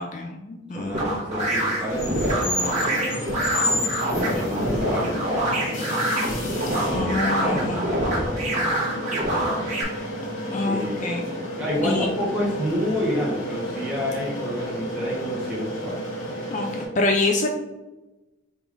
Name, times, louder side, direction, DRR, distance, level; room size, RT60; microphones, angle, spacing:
voice 1, 0.0-1.3 3.2-3.3 6.9-7.8 10.5-11.3 11.8-12.1 16.5-17.5, left 2 dB, 40° left, 3 dB, 0.4 m, -26 dB
voice 2, 0.7-3.1 4.2-6.1 6.5-9.7 10.5-11.0 11.6-16.0, equal, 5° right, -7 dB, 0.9 m, -30 dB
sound 1, 0.9-9.8, right 1 dB, 35° right, 1.1 m, -26 dB
sound 2, 1.4-16.9, left 1 dB, 85° left, 1.4 m, -30 dB
3.6 x 2.5 x 4.6 m, 1.1 s
head